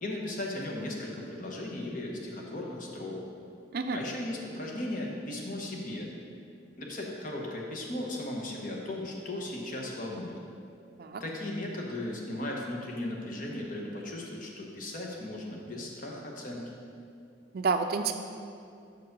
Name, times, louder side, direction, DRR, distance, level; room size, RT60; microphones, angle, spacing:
voice 1, 0.0-3.2 3.9-6.1 6.8-10.4 11.2-16.6, left 1 dB, 50° left, -1 dB, 1.0 m, -36 dB
voice 2, 17.5-18.1, right 4 dB, 55° right, 7 dB, 0.4 m, -29 dB
6.4 x 4.7 x 5.3 m, 2.4 s
head